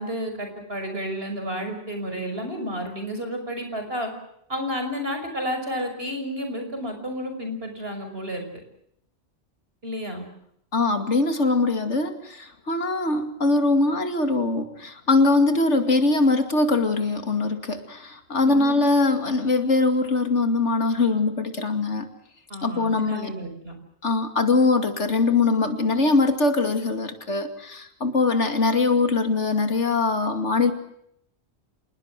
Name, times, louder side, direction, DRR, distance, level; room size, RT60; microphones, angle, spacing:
voice 1, 0.0-4.1 4.5-8.5 9.8-10.3 18.4-18.8 22.5-23.7, equal, 55° right, 5 dB, 6.1 m, -31 dB
voice 2, 10.7-22.1 22.6-23.3 24.0-30.7, left 3 dB, 75° left, 7 dB, 2.9 m, -22 dB
27.5 x 20.0 x 7.6 m, 0.73 s
omnidirectional pair, 1.2 m